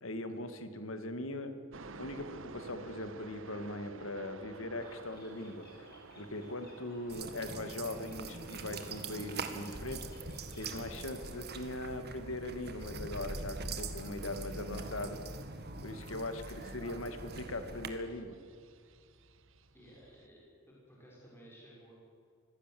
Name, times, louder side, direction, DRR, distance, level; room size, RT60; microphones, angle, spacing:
voice 1, 0.0-1.5 2.0-5.7 6.2-10.0 10.6-15.2 15.8-18.4, left 1 dB, 70° left, 8 dB, 2.1 m, -40 dB
sound 1, 1.7-20.3, right 3 dB, 65° right, 1.3 m, -54 dB
Bird, 4.8-10.8, left 2 dB, 50° left, 6.7 m, -62 dB
sound 2, 7.1-17.9, right 3 dB, 50° right, 1.9 m, -43 dB
voice 2, 19.7-21.9, equal, 10° left, -5 dB, 6.3 m, -56 dB
25.0 x 17.0 x 7.7 m, 2.3 s
head